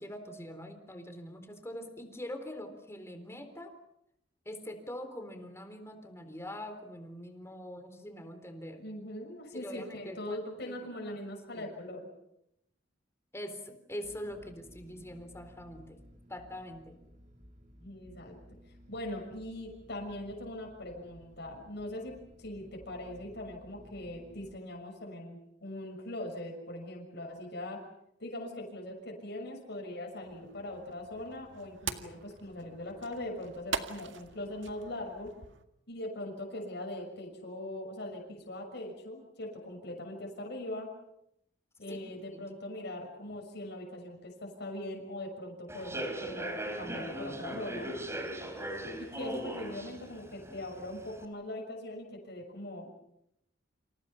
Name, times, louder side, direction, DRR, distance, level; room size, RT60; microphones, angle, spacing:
voice 1, 0.0-3.7 4.5-8.8 9.5-10.4 10.7-10.8 11.5-11.7 13.3-16.0 16.3-17.0 41.9-42.0 42.3-42.5, left 1 dB, 15° left, 6 dB, 3.9 m, -43 dB
voice 2, 8.8-12.1 17.8-18.3 18.9-27.8 28.2-35.3 35.9-40.9 41.8-48.0 49.0-52.9, left 1 dB, 60° left, 1 dB, 6.5 m, -41 dB
sound 1, 14.0-24.6, equal, 45° right, 3.6 m, -57 dB
sound 2, 30.2-35.6, right 5 dB, 75° right, 1.9 m, -42 dB
Human voice / Subway metro underground, 45.7-51.2, right 1 dB, 15° right, 3.8 m, -39 dB
29.5 x 27.5 x 5.8 m, 0.79 s
head